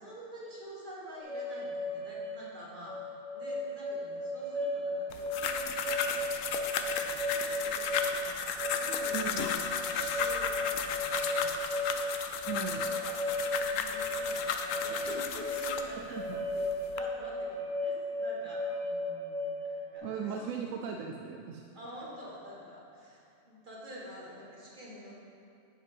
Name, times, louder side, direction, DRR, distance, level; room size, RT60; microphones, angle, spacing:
voice 1, 0.0-12.4 12.7-20.5 21.7-25.1, equal, 35° right, -5 dB, 1.8 m, -48 dB
sound 1, 1.2-20.0, left 1 dB, 90° left, 2.0 m, -35 dB
sound 2, 5.1-15.9 16.5-17.0, left 7 dB, 75° left, 0.9 m, -34 dB
voice 2, 9.1-9.4 12.5-12.8 16.1-16.2 20.0-21.6, right 7 dB, 80° right, 2 dB, 1.0 m, -37 dB
10.5 x 5.3 x 5.3 m, 2.7 s
omnidirectional pair, 1.4 m